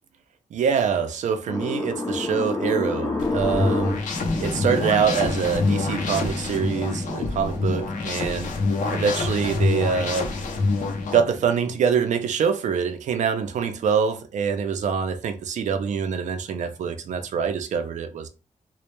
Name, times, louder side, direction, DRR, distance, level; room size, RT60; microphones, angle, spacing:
voice 1, 0.5-4.0 4.4-8.5 8.9-10.3 11.1-18.3, right 6 dB, 75° right, 0.4 m, -25 dB
sound 1, 1.5-11.8, left 3 dB, 25° left, 0.4 m, -31 dB
sound 2, 3.2-11.2, left 3 dB, 85° left, 0.5 m, -26 dB
2.1 x 2.0 x 2.9 m
wide cardioid pair, 175°, 13 cm